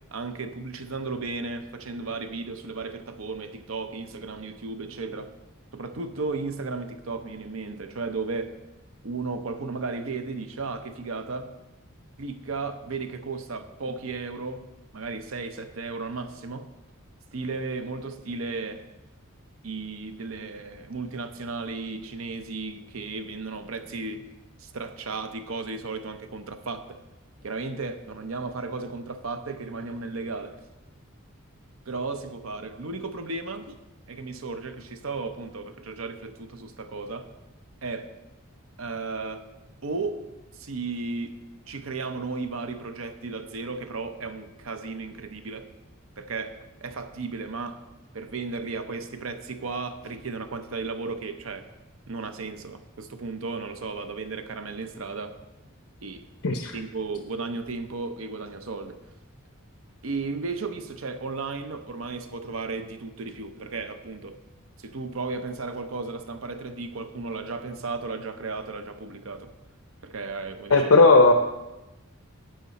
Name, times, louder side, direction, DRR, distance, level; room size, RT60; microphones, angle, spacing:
voice 1, 0.1-5.3 5.7-8.6 9.0-11.5 12.2-14.7 14.9-16.7 17.3-18.9 19.6-24.3 24.6-27.0 27.4-30.6 31.9-33.8 34.1-37.3 37.8-38.1 38.8-39.5 39.8-40.2 40.5-41.4 41.7-45.7 46.2-47.8 48.1-51.6 52.1-55.4 56.0-56.3 56.7-59.0 60.0-64.4 64.8-69.5 70.0-70.9, right 3 dB, 75° right, 8 dB, 0.8 m, -34 dB
voice 2, 56.4-56.7 70.7-71.3, left 3 dB, 90° left, 4 dB, 0.8 m, -16 dB
11.5 x 8.9 x 4.1 m, 1.0 s
head